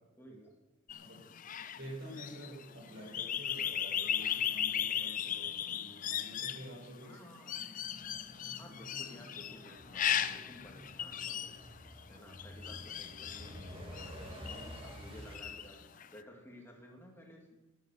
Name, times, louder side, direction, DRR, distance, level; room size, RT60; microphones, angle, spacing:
voice 1, 0.2-0.5 7.0-7.7 8.6-11.5 11.8-17.5, equal, 10° left, 0 dB, 2.2 m, -54 dB
sound 1, 0.9-15.0 15.3-16.1, left 9 dB, 40° left, 0.5 m, -37 dB
voice 2, 1.8-7.2, equal, 60° right, -1 dB, 5.6 m, -49 dB
Truck, 7.8-15.4, equal, 25° right, 2.2 m, -50 dB
11.5 x 10.0 x 7.2 m, 1.1 s
head